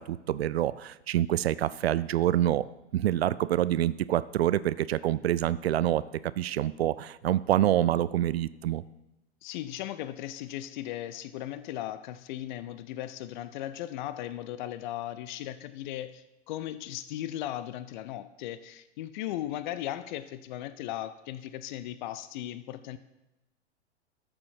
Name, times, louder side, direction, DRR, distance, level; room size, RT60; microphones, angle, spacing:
voice 1, 0.0-2.7 2.9-6.0 6.4-8.8, right 12 dB, 60° right, 17 dB, 0.5 m, -26 dB
voice 2, 9.4-23.0, left 13 dB, 40° left, 14 dB, 0.6 m, -37 dB
13.0 x 6.9 x 4.5 m, 0.96 s
figure-of-eight pair, 90°, 35 cm